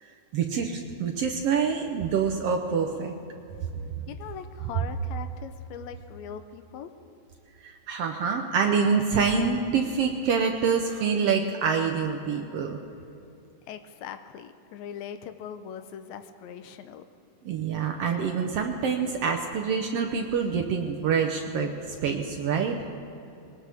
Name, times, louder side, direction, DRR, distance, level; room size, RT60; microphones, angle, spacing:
voice 1, 0.3-3.1 7.6-12.8 17.4-21.7 22.0-22.8, right 6 dB, 75° right, 3 dB, 1.4 m, -26 dB
voice 2, 4.1-6.9 13.7-17.0, left 8 dB, 80° left, 9 dB, 1.7 m, -41 dB
21.0 x 19.0 x 3.5 m, 2.8 s
omnidirectional pair, 3.7 m